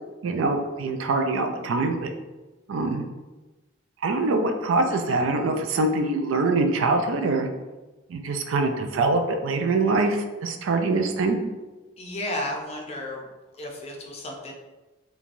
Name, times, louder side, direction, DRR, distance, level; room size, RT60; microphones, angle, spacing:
voice 1, 0.2-2.1 2.7-3.0 4.0-7.5 8.1-11.4, right 3 dB, 70° right, 5 dB, 0.3 m, -24 dB
voice 2, 12.0-13.3 13.6-14.5, left 1 dB, 30° left, 0 dB, 0.4 m, -33 dB
3.1 x 2.2 x 2.5 m, 1.1 s
head